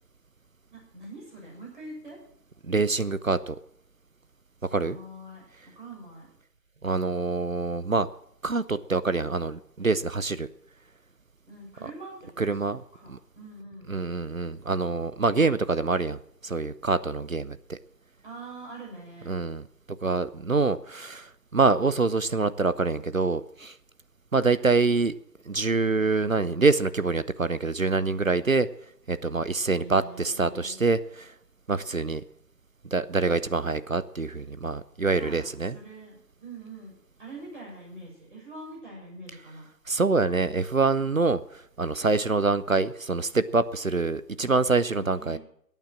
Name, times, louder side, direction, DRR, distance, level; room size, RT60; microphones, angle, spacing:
voice 1, 0.7-2.2 4.6-6.3 11.5-14.1 18.2-19.3 29.7-30.8 35.2-39.7 44.9-45.4, right 2 dB, 30° right, -3 dB, 7.2 m, -44 dB
voice 2, 2.6-3.6 4.7-5.0 6.8-8.1 8.4-10.5 12.4-12.8 13.1-13.2 13.9-17.8 19.3-19.6 20.0-23.7 24.3-25.1 25.5-28.7 29.1-31.3 31.7-32.2 32.9-35.8 39.9-45.4, right 3 dB, 55° right, 15 dB, 0.6 m, -25 dB
13.5 x 9.1 x 7.6 m, 0.72 s
figure-of-eight pair, 165°, 49 cm